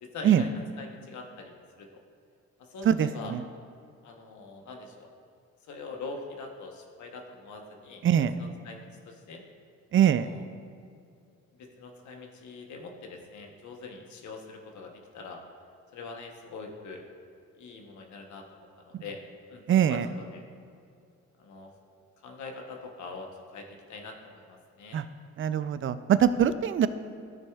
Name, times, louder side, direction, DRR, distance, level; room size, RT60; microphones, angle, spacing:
voice 1, 0.0-2.0 2.6-3.3 4.0-5.1 5.7-8.0 8.4-9.4 10.0-10.4 11.6-15.4 15.9-17.0 17.6-19.2 19.5-19.6 19.9-20.4 21.4-21.7 22.2-25.0, left 3 dB, 70° left, 3 dB, 1.0 m, -43 dB
voice 2, 2.9-3.4 8.0-8.4 9.9-10.3 19.7-20.1 24.9-25.0 25.4-26.9, right 9 dB, 45° right, 13 dB, 0.4 m, -23 dB
13.0 x 6.2 x 2.4 m, 2.4 s
cardioid pair, 90°, 30 cm